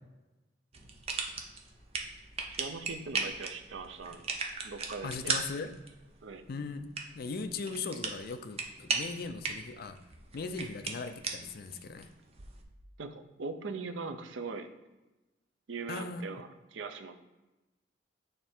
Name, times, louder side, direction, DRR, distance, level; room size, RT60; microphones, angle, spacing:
sound 1, 0.7-12.6, right 4 dB, 35° right, 0.6 m, -38 dB
voice 1, 2.5-4.4 4.6-5.3 6.2-6.4 13.0-14.7 15.7-17.2, right 4 dB, 85° right, 8 dB, 0.6 m, -40 dB
voice 2, 5.0-5.7 6.5-6.9 7.1-10.0 10.3-12.1 15.9-16.2, left 4 dB, 55° left, 10 dB, 0.4 m, -38 dB
6.6 x 3.3 x 4.4 m, 1.1 s
head